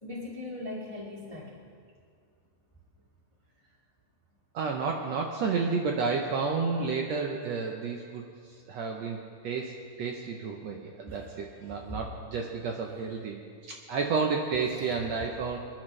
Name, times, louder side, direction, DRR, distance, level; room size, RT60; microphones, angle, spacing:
voice 1, 0.0-1.7 11.1-12.0 14.7-15.3, left 1 dB, 25° left, -4 dB, 0.6 m, -41 dB
voice 2, 4.5-9.2 9.4-9.7 10.0-13.4 13.7-15.6, right 4 dB, 70° right, 1 dB, 1.6 m, -31 dB
25.5 x 10.5 x 3.2 m, 2.2 s
omnidirectional pair, 3.9 m